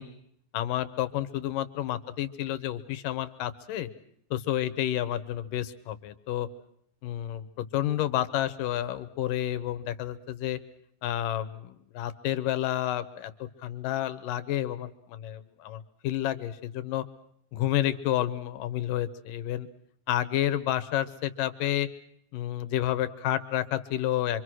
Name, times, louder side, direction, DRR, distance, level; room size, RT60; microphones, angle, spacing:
voice 1, 0.5-3.9 4.3-6.5 7.0-7.5 7.7-10.6 11.0-13.3 13.6-17.0 17.5-19.7 20.1-21.9 22.3-24.4, left 12 dB, 90° left, 12 dB, 2.8 m, -30 dB
26.0 x 25.0 x 6.3 m, 0.71 s
omnidirectional pair, 3.7 m